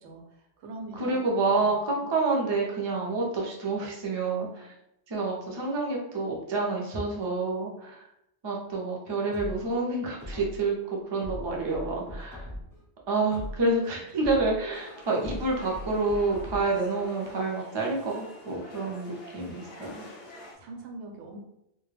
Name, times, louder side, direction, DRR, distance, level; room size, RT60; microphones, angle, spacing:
voice 1, 0.0-1.2 1.6-1.7 20.3-21.4, right 2 dB, 85° right, 1 dB, 0.9 m, -43 dB
voice 2, 1.0-4.7 5.1-8.1 8.4-12.5 13.1-20.0, right 3 dB, 40° right, -2 dB, 0.4 m, -28 dB
sound 1, 9.3-10.7 11.2-12.8 13.2-14.7 15.2-16.8 17.2-17.3, equal, ahead, 0.7 m, -40 dB
sound 2, 14.7-20.5, left 1 dB, 55° left, 0.6 m, -47 dB
2.2 x 2.1 x 3.1 m, 0.81 s
omnidirectional pair, 1.2 m